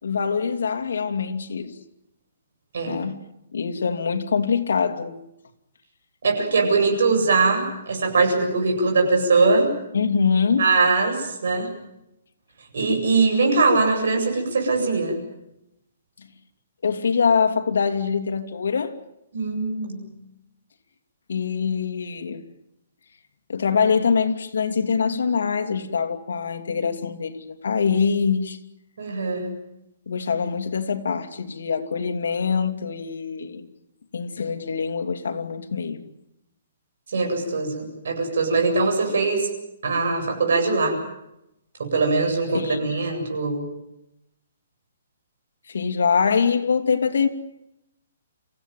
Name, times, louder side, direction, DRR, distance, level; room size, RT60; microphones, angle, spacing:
voice 1, 0.0-1.7 2.9-5.2 9.9-10.7 16.8-18.9 21.3-22.4 23.5-28.6 30.1-33.7 34.1-36.0 42.5-42.8 45.7-47.3, left 6 dB, 80° left, 2.7 m, -24 dB
voice 2, 6.2-9.7 10.6-11.7 12.7-15.2 19.3-20.1 29.0-29.6 37.1-39.5 39.8-41.0 41.8-43.6, right 3 dB, 65° right, 7.8 m, -21 dB
28.0 x 16.0 x 9.3 m
hypercardioid pair, 175°, 0 cm